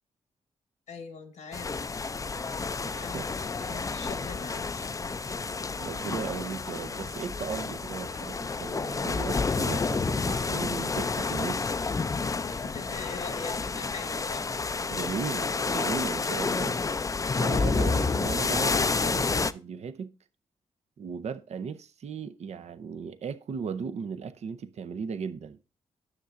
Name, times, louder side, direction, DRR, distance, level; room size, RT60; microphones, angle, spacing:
voice 1, 0.9-1.8 2.8-5.5 12.5-14.5, left 5 dB, 75° left, 1.2 m, -42 dB
sound 1, 1.5-19.5, left 4 dB, 25° left, 0.4 m, -30 dB
voice 2, 2.8-3.3 5.8-11.8 14.9-16.8 17.4-20.1 21.0-25.6, right 6 dB, 60° right, 0.6 m, -37 dB
9.7 x 6.6 x 2.5 m
supercardioid pair, 50°, 13 cm